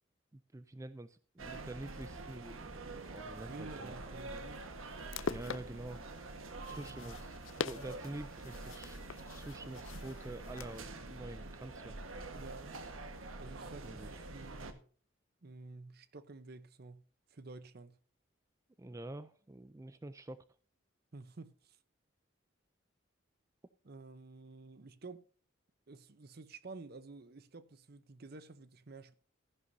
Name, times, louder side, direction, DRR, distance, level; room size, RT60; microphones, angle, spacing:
voice 1, 0.5-3.9 5.3-6.1 6.7-7.4 7.6-9.0 9.2-12.0 13.8-14.2 18.8-20.4, right 2 dB, 15° right, 0.4 m, -47 dB
sound 1, 1.4-14.7, right 2 dB, 90° right, 1.4 m, -46 dB
voice 2, 3.5-4.6 6.7-7.1 12.3-12.8 13.4-14.0 14.3-14.9 15.4-17.0 17.3-18.0 21.1-21.8 23.8-25.3 25.9-29.2, right 3 dB, 50° right, 0.7 m, -51 dB
sound 2, 4.9-10.9, left 6 dB, 75° left, 0.5 m, -44 dB
14.5 x 10.5 x 2.7 m
head